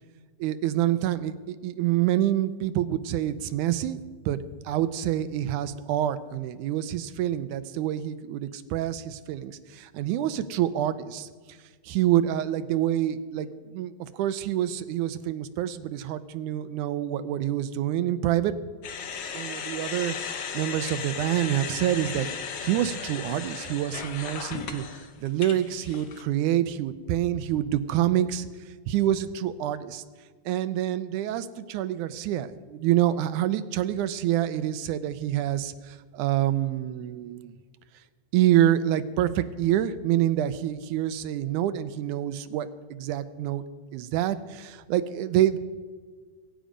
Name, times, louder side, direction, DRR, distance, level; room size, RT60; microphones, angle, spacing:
voice 1, 0.4-4.0 4.3-4.4 4.6-11.3 11.8-18.5 19.3-20.2 20.5-24.8 25.2-28.5 28.9-30.0 30.5-37.5 38.3-43.6 43.9-45.6, right 12 dB, 90° right, 12 dB, 2.2 m, -27 dB
sound 1, 18.8-26.2, left 6 dB, 70° left, 1.0 m, -36 dB
23.0 x 9.1 x 5.1 m, 1.5 s
omnidirectional pair, 3.4 m